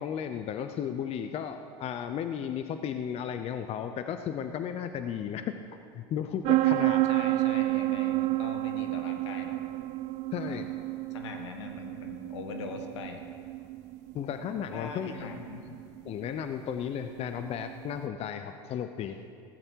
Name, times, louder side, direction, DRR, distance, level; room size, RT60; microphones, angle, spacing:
voice 1, 0.0-5.5 5.9-7.0 10.3-10.7 14.1-15.3 16.0-19.2, left 8 dB, 45° left, 8 dB, 0.7 m, -34 dB
sound 1, 6.4-18.0, right 18 dB, 55° right, 0.4 m, -30 dB
voice 2, 7.0-9.6 10.4-10.6 11.1-13.2 14.7-15.7, left 5 dB, 85° left, 5 dB, 1.6 m, -41 dB
15.5 x 14.5 x 4.7 m, 2.3 s
hypercardioid pair, 90°, 15 cm